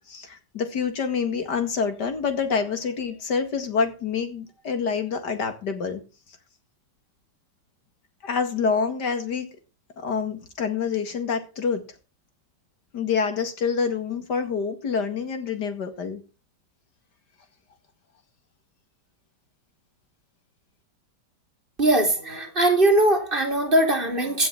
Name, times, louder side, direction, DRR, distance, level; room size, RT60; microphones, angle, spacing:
voice 1, 0.1-6.0 8.2-9.5 10.0-11.9 12.9-16.2, left 5 dB, 75° left, 8 dB, 2.6 m, -27 dB
voice 2, 21.8-24.5, right 1 dB, 30° right, 3 dB, 3.2 m, -20 dB
16.0 x 6.3 x 5.9 m, 0.32 s
omnidirectional pair, 1.9 m